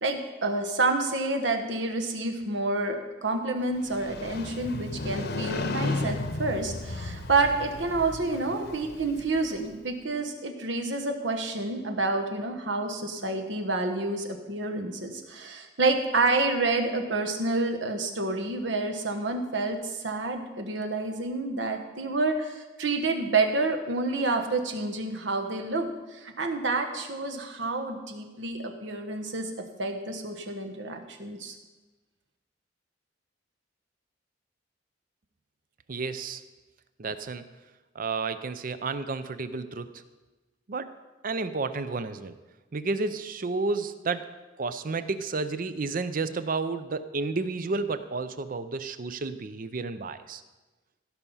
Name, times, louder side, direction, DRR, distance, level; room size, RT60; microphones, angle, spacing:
voice 1, 0.0-29.5 29.8-31.5, right 3 dB, 75° right, 4 dB, 1.2 m, -29 dB
Motorcycle, 3.7-9.7, left 2 dB, 60° left, 0.9 m, -34 dB
voice 2, 35.9-36.4 37.0-37.5 37.9-39.9 40.7-40.9 41.2-42.3 42.7-44.3 44.6-50.4, right 3 dB, 50° right, 12 dB, 0.6 m, -31 dB
16.0 x 5.6 x 5.6 m, 1.2 s
head